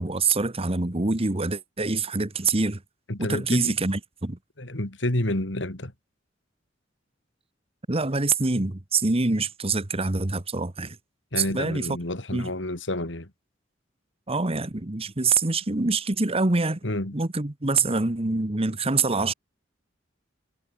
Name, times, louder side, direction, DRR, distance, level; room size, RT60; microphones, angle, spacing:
voice 1, 0.0-2.8 3.2-4.4 7.9-11.0 11.5-12.0 12.3-12.5 14.3-16.8 17.1-19.3, right 3 dB, 30° right, 1.4 m, -25 dB
voice 2, 3.1-3.8 4.6-5.9 11.3-13.3 16.8-17.2, left 1 dB, 70° left, 3.2 m, -29 dB
head